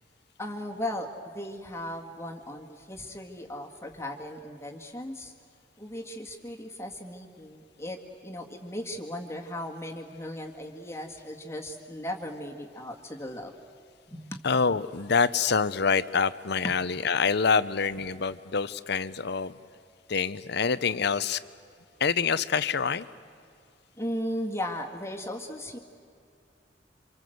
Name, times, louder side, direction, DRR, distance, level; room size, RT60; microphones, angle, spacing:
voice 1, 0.4-5.3 5.8-13.5 14.1-14.4 16.6-16.7 24.0-25.8, left 1 dB, 15° left, 1 dB, 1.9 m, -37 dB
voice 2, 14.4-19.6 20.1-21.4 22.0-23.1, left 5 dB, 65° left, 15 dB, 0.8 m, -26 dB
29.0 x 26.5 x 7.9 m, 2.4 s
head